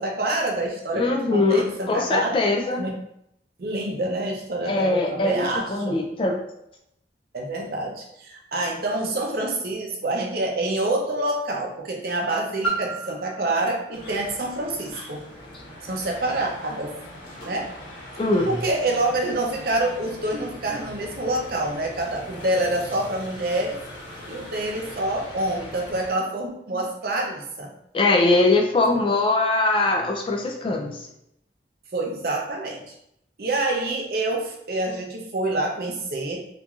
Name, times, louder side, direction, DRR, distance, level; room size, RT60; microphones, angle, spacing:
voice 1, 0.0-2.4 2.8-3.0 3.6-6.0 7.3-15.2 15.9-17.0 17.4-17.7 18.5-23.8 24.3-27.7 28.9-29.0 31.9-32.9 33.4-36.4, right 2 dB, 55° right, 0 dB, 0.5 m, -27 dB
voice 2, 0.9-2.8 4.7-6.4 18.2-18.6 27.9-31.1, left 2 dB, 30° left, 2 dB, 0.3 m, -22 dB
Piano, 12.6-18.1 18.8-18.9, right 3 dB, 5° left, 1.0 m, -36 dB
sound 1, 13.9-26.1, left 1 dB, 90° left, 1.2 m, -41 dB
3.0 x 2.5 x 2.3 m, 0.76 s
head